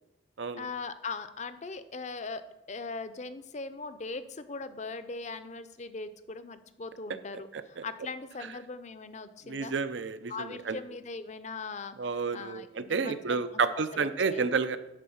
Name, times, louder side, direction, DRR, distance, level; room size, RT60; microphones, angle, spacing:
voice 1, 0.6-2.4 2.7-9.7 10.3-13.5 13.9-14.5, left 4 dB, 40° left, 11 dB, 0.6 m, -40 dB
voice 2, 9.5-10.8 12.0-14.8, right 5 dB, 75° right, 12 dB, 0.6 m, -30 dB
11.0 x 4.3 x 7.0 m, 0.93 s
head